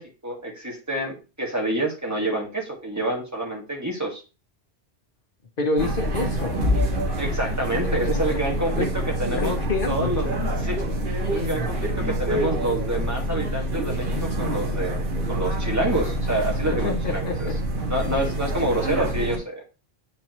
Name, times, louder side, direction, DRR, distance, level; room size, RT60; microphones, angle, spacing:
voice 1, 0.0-4.2 7.2-9.6 9.9-10.3 10.6-10.8 11.3-17.5 17.9-19.6, right 1 dB, 15° right, 0 dB, 1.8 m, -28 dB
voice 2, 5.6-6.6 8.1-8.4 8.8-8.9 9.2-10.3 11.4-11.7 16.8-17.5, left 3 dB, 55° left, 4 dB, 1.3 m, -28 dB
sound 1, 5.8-19.4, right 1 dB, 55° right, 1.7 m, -26 dB
8.7 x 4.6 x 3.0 m, 0.31 s
omnidirectional pair, 1.1 m